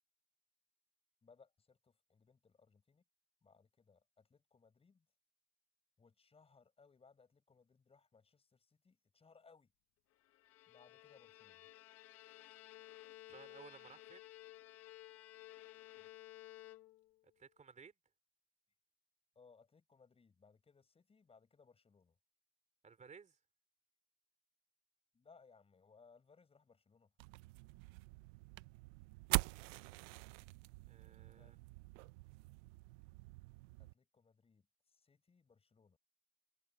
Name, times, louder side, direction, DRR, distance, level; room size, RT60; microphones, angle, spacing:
voice 1, 1.2-3.0 3.4-5.1 6.0-9.7 10.7-11.7 16.0-16.1 19.4-22.2 25.1-27.1 31.4-31.6 33.8-36.0, left 5 dB, 15° left, 7.2 m, -67 dB
Bowed string instrument, 10.2-17.2, left 16 dB, 45° left, 1.1 m, -56 dB
voice 2, 13.3-14.3 17.4-17.9 22.8-23.4 30.9-31.6, right 6 dB, 20° right, 4.1 m, -58 dB
sound 1, 27.2-33.9, right 24 dB, 70° right, 0.7 m, -44 dB
supercardioid pair, 130°, 33 cm